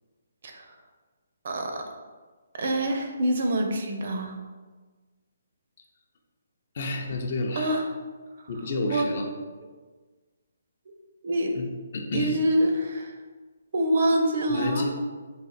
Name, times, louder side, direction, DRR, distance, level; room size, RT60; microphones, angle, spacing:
voice 1, 0.4-0.8 1.4-1.8 2.6-4.4 7.6-7.9 8.9-9.1 11.2-11.5 12.1-13.2 13.7-14.8, right 1 dB, 45° right, 3 dB, 0.5 m, -25 dB
voice 2, 6.7-7.8 8.5-9.3 11.5-11.7 11.9-12.3 14.5-14.9, left 2 dB, 40° left, 3 dB, 0.5 m, -30 dB
4.1 x 2.4 x 4.0 m, 1.4 s
hypercardioid pair, 170°, 0 cm